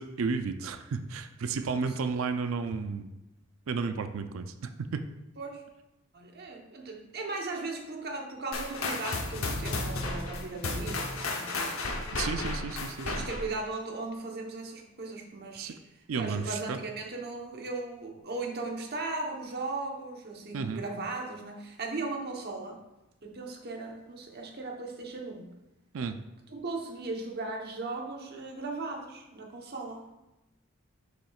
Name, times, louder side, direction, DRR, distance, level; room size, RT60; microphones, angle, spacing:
voice 1, 0.0-3.1 3.7-4.5 4.8-5.0 12.1-13.3 15.6-15.8 16.1-16.8 20.5-20.8 25.9-26.2, right 5 dB, 75° right, 8 dB, 0.4 m, -32 dB
voice 2, 6.1-11.8 13.0-22.8 23.2-25.6 26.5-30.1, right 3 dB, 50° right, 1 dB, 1.0 m, -37 dB
sound 1, 8.5-13.6, left 2 dB, 85° left, 0.9 m, -33 dB
7.1 x 6.1 x 2.4 m, 0.97 s
head